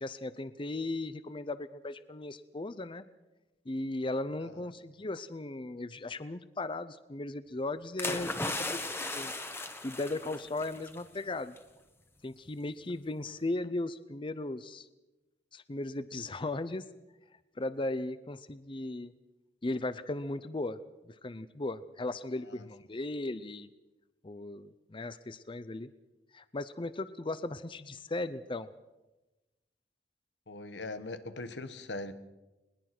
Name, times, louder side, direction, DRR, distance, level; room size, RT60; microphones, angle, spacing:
voice 1, 0.0-3.0 3.7-9.3 9.8-11.5 12.2-14.9 15.5-16.8 17.6-19.1 19.6-20.8 21.0-23.7 24.2-25.9 26.3-28.7, left 2 dB, 30° left, 14 dB, 0.6 m, -37 dB
sound 1, 8.0-11.0 11.3-11.6, left 2 dB, 15° left, 1.4 m, -37 dB
voice 2, 30.5-32.1, left 2 dB, 90° left, 11 dB, 1.4 m, -41 dB
21.0 x 20.0 x 6.1 m, 1.1 s
head